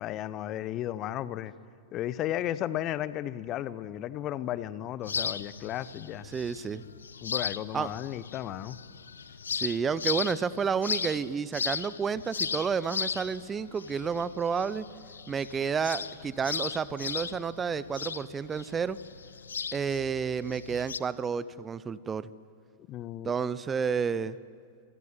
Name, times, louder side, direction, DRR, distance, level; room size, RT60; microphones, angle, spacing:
voice 1, 0.0-1.5 1.9-6.2 7.2-8.8 22.9-23.3, left 12 dB, 35° left, 17 dB, 1.0 m, -34 dB
sound 1, 5.0-21.0, left 6 dB, 70° left, 0.8 m, -37 dB
voice 2, 6.3-6.8 7.7-7.9 9.5-14.9 15.3-19.0 19.7-22.3 23.2-24.4, right 6 dB, 20° right, 18 dB, 0.7 m, -30 dB
26.0 x 24.5 x 9.4 m, 2.3 s
figure-of-eight pair, 90°, 0 cm